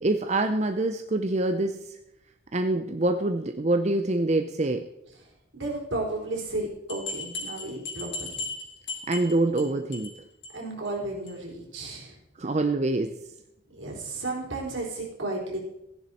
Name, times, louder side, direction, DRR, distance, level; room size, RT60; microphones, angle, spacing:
voice 1, 0.0-2.0 2.5-4.9 9.1-10.1 12.4-13.2, right 2 dB, 35° right, 7 dB, 0.6 m, -25 dB
voice 2, 5.5-8.4 10.5-12.1 13.7-15.6, right 2 dB, 75° right, -1 dB, 3.9 m, -33 dB
sound 1, 6.9-9.6 9.9-10.2 10.4-10.5 10.9-11.0 11.3-11.4, left 3 dB, 65° left, 3.3 m, -36 dB
15.5 x 10.5 x 4.2 m, 0.85 s
head